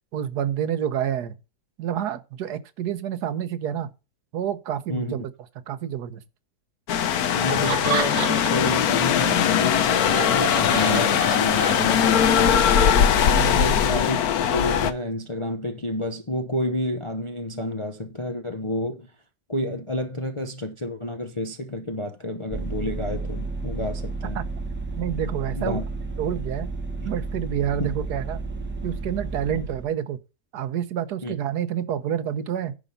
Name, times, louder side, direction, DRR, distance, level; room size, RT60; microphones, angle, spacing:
voice 1, 0.1-1.3 1.8-3.9 4.3-5.2 5.7-6.2 13.3-13.8 24.3-24.5 25.0-25.8 26.2-26.7 27.1-28.4 28.8-30.2 30.5-32.8, right 9 dB, 75° right, 1.3 m, -28 dB
sound 1, 6.9-14.9, left 8 dB, 70° left, 1.2 m, -20 dB
voice 2, 7.3-12.9 13.5-19.1 19.5-24.4 25.6-25.8 27.0-27.1 27.8-27.9 29.5-29.6 31.2-31.3, left 1 dB, 30° left, 0.6 m, -30 dB
Laughter, 7.4-8.7 9.1-12.3, right 5 dB, 45° right, 1.4 m, -30 dB
Vehicle, 22.5-29.9, right 3 dB, 5° right, 1.2 m, -32 dB
10.0 x 5.1 x 5.5 m
omnidirectional pair, 1.8 m